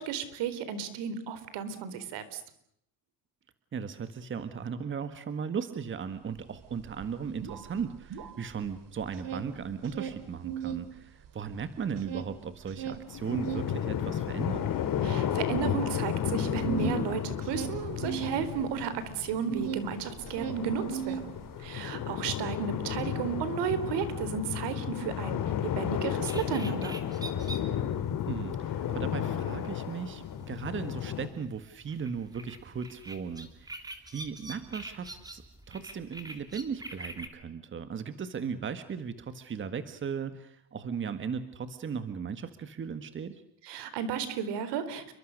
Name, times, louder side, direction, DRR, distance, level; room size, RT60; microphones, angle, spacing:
voice 1, 0.0-2.4 15.0-21.3 21.6-27.0 43.7-45.1, right 7 dB, 70° right, 12 dB, 4.2 m, -33 dB
voice 2, 3.7-14.7 28.3-35.4 35.7-43.4, right 6 dB, 25° right, 11 dB, 1.7 m, -37 dB
sound 1, 6.4-6.5 6.7-8.7 9.0-10.9 11.2-19.9 20.2-21.7, right 9 dB, 50° right, 2.8 m, -38 dB
sound 2, 13.1-31.3, left 9 dB, 50° left, 3.3 m, -33 dB
sound 3, 26.2-37.3, right 2 dB, 10° right, 3.2 m, -46 dB
30.0 x 23.5 x 6.6 m, 0.72 s
cardioid pair, 135°, 42 cm